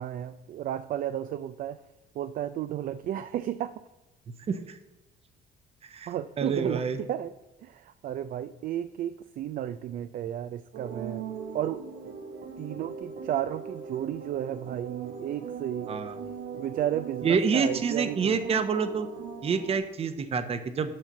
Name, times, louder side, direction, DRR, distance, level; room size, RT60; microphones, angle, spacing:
voice 1, 0.0-1.8 2.1-3.8 6.1-7.3 7.6-11.2 11.5-11.8 12.6-15.9 16.6-18.4, right 11 dB, 55° right, 12 dB, 0.4 m, -33 dB
voice 2, 4.5-4.8 5.9-6.1 6.4-7.0 15.9-16.1 17.2-19.1 19.4-21.0, right 5 dB, 35° right, 10 dB, 0.9 m, -27 dB
sound 1, 10.7-19.8, right 6 dB, 75° right, 1.3 m, -40 dB
7.6 x 5.7 x 6.6 m, 1.0 s
cardioid pair, 110°, 17 cm